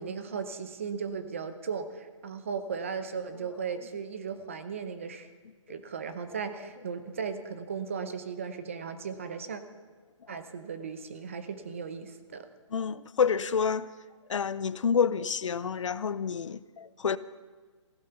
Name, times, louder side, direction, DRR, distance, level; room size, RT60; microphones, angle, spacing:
voice 1, 0.0-5.3 5.7-9.6 10.3-12.5, right 6 dB, 25° right, 0.7 m, -36 dB
voice 2, 12.7-13.9 14.3-17.2, left 6 dB, 70° left, 0.6 m, -28 dB
15.0 x 11.5 x 6.8 m
hypercardioid pair, 175°, 16 cm